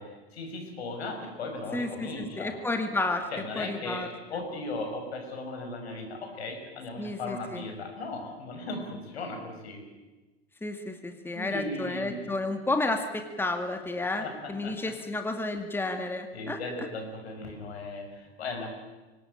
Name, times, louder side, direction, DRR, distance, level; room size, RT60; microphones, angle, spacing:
voice 1, 0.0-2.5 3.3-9.8 11.3-12.2 14.2-14.8 16.3-18.7, left 2 dB, 80° left, 4 dB, 6.0 m, -37 dB
voice 2, 1.7-3.3 3.6-4.1 7.0-7.6 10.6-16.9, left 2 dB, 5° left, 6 dB, 2.2 m, -31 dB
24.0 x 19.0 x 8.9 m, 1.2 s
hypercardioid pair, 90°, 31 cm